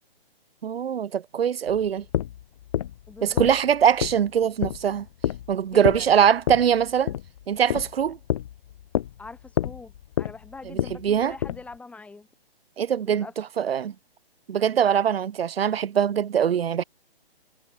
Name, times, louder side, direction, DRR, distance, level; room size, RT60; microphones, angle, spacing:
voice 1, 0.6-2.0 3.2-5.1 5.5-7.1 7.5-8.2 10.7-11.3 12.8-13.9 14.5-16.8, right 8 dB, 75° right, 0.7 m, -22 dB
sound 1, 1.7-11.7, left 11 dB, 35° left, 0.7 m, -29 dB
voice 2, 3.1-3.4 5.7-6.1 9.2-12.3 13.0-13.3, left 3 dB, 5° left, 4.5 m, -43 dB
hypercardioid pair, 150°, 30 cm